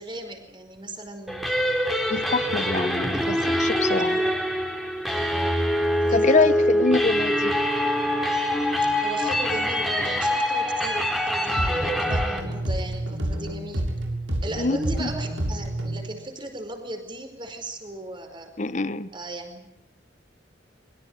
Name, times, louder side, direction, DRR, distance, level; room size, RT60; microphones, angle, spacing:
voice 1, 0.0-1.6 3.1-3.2 4.0-4.3 5.0-5.7 6.0-6.8 8.8-13.9 14.4-18.5 19.1-19.7, right 1 dB, 25° right, 6 dB, 5.0 m, -37 dB
sound 1, 1.3-12.4, equal, ahead, 4.1 m, -24 dB
voice 2, 2.1-4.2 6.1-7.6 14.6-15.1 18.6-19.1, left 3 dB, 40° left, 14 dB, 1.0 m, -25 dB
sound 2, 11.6-16.1, right 1 dB, 85° right, 7.2 m, -29 dB
24.5 x 23.0 x 9.1 m, 0.82 s
head